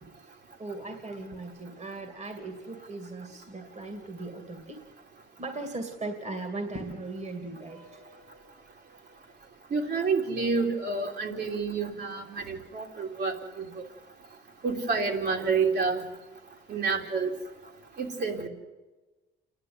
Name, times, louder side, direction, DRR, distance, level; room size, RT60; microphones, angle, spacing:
voice 1, 0.0-4.8 5.4-7.8, right 2 dB, 35° right, 6 dB, 2.5 m, -38 dB
voice 2, 9.7-13.6 14.6-16.0 16.7-17.3 18.0-18.5, right 4 dB, 55° right, 1 dB, 3.2 m, -28 dB
28.5 x 11.0 x 9.5 m, 1.2 s
cardioid pair, 90°, 20 cm